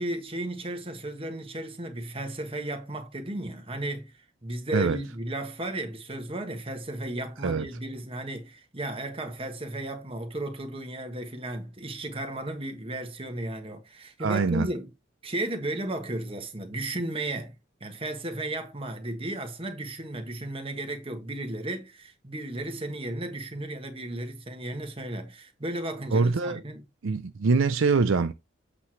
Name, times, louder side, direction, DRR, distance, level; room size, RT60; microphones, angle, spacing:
voice 1, 0.0-4.1 4.4-14.9 15.2-17.5 17.8-26.8, right 1 dB, 25° right, 1.3 m, -34 dB
voice 2, 14.2-14.7 26.1-26.6 27.0-28.3, right 4 dB, 70° right, 0.5 m, -24 dB
8.3 x 3.1 x 5.8 m
head